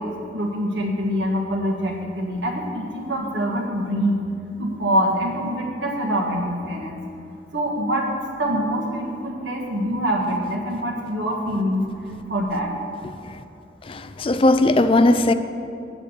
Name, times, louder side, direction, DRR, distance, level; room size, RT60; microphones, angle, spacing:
voice 1, 0.0-4.2 4.6-7.0 7.5-8.1 8.4-12.7, equal, 90° right, 1.6 m, -25 dB
voice 2, 13.9-15.3, left 2 dB, 30° left, 0.4 m, -17 dB
8.7 x 7.6 x 6.8 m
head